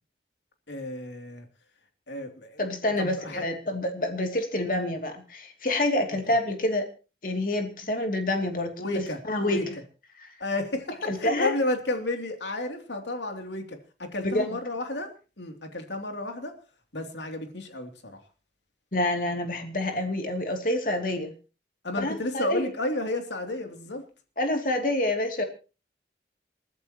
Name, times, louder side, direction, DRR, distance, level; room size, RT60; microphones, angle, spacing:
voice 1, 0.7-1.5 2.1-2.6 3.0-3.4 8.8-9.7 10.4-16.5 16.9-18.2 21.8-24.1, left 2 dB, 85° left, 4 dB, 3.0 m, -32 dB
voice 2, 2.6-6.9 7.2-8.8 9.3-9.6 10.2-10.3 11.0-11.5 14.2-14.5 18.9-21.3 22.0-22.7 24.4-25.4, left 1 dB, 50° left, 4 dB, 2.8 m, -27 dB
28.5 x 11.5 x 3.0 m, 0.34 s
head